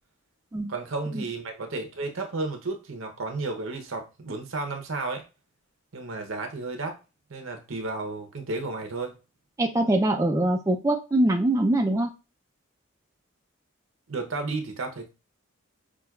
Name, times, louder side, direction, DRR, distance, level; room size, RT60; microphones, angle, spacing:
voice 1, 0.7-5.2 5.9-7.0 7.3-9.1 14.1-15.1, right 3 dB, 75° right, 0.8 m, -32 dB
voice 2, 9.6-12.1, right 1 dB, 15° right, 0.3 m, -23 dB
5.9 x 2.2 x 2.3 m
head